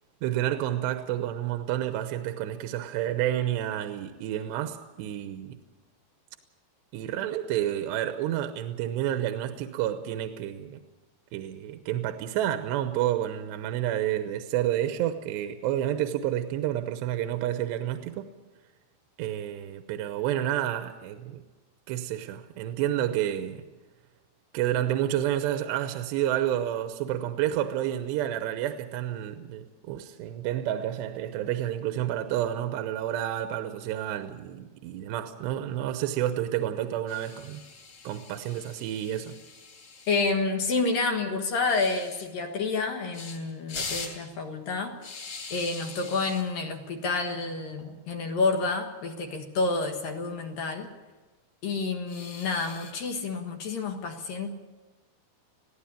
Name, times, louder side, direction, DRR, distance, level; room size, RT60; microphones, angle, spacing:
voice 1, 0.2-5.6 6.9-10.8 11.3-18.3 19.2-21.4 21.9-23.6 24.5-37.6 38.0-39.4, right 12 dB, 85° right, 3.0 m, -30 dB
sound 1, 37.1-40.2 41.7-42.3 43.1-43.4 43.7-44.2 45.0-46.4 47.6-47.9 48.1-48.2 48.6-48.7 50.0-50.5 52.1-52.9, left 4 dB, 40° left, 4.9 m, -41 dB
voice 2, 40.1-44.9 45.5-50.9 51.6-54.5, left 3 dB, 60° left, 3.0 m, -29 dB
21.0 x 15.5 x 8.8 m
omnidirectional pair, 5.0 m